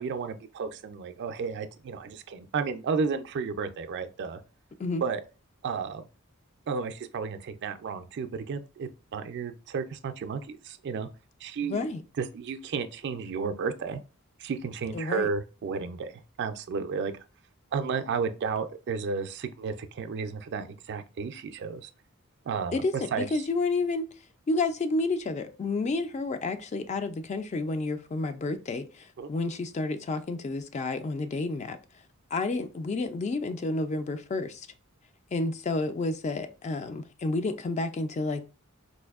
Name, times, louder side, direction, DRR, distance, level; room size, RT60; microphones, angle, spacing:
voice 1, 0.0-4.4 5.0-5.2 5.6-6.0 6.7-11.1 11.4-11.9 12.2-14.0 14.4-16.1 16.4-17.1 17.7-21.9 22.5-22.8 23.1-23.3 29.2-29.3, right 5 dB, 55° right, 0.4 m, -32 dB
voice 2, 11.6-12.0 14.9-15.3 22.7-24.1 24.5-31.8 32.3-34.7 35.3-38.4, left 3 dB, 30° left, 0.3 m, -30 dB
4.2 x 2.5 x 2.3 m
head